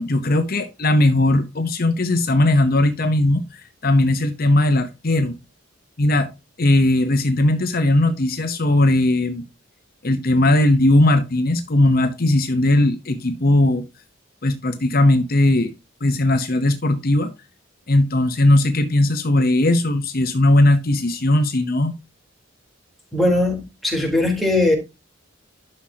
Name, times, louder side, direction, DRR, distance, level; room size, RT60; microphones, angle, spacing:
voice 1, 0.0-5.4 6.0-6.3 6.6-9.4 10.0-13.8 14.4-15.7 16.0-17.3 17.9-21.9, left 1 dB, 45° left, 0.9 m, -18 dB
voice 2, 23.1-24.7, left 2 dB, ahead, 3.7 m, -19 dB
12.0 x 6.3 x 2.8 m
head